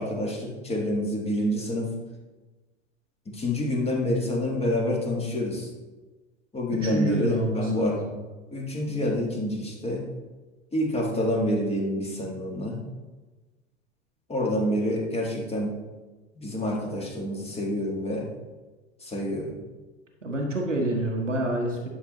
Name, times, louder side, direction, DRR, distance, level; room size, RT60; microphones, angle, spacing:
voice 1, 0.0-1.9 3.3-5.7 6.5-8.0 8.5-10.0 10.7-12.8 14.3-15.7 16.4-18.3 19.0-19.5, left 1 dB, 15° left, -1 dB, 1.9 m, -27 dB
voice 2, 6.7-8.1 20.2-21.9, right 1 dB, 85° right, 0 dB, 1.2 m, -28 dB
11.0 x 6.0 x 3.1 m, 1.2 s
figure-of-eight pair, 85°, 36 cm